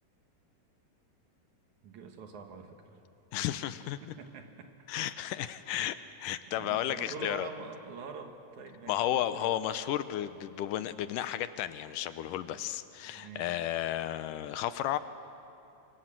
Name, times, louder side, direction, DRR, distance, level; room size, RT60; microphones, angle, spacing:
voice 1, 1.8-3.0 4.0-4.7 6.5-9.5 12.5-12.6 13.0-13.6, right 5 dB, 65° right, 5 dB, 2.8 m, -45 dB
voice 2, 3.3-4.0 4.9-7.5 8.9-15.0, left 12 dB, 80° left, 12 dB, 2.3 m, -33 dB
26.5 x 24.0 x 7.6 m, 2.8 s
omnidirectional pair, 3.8 m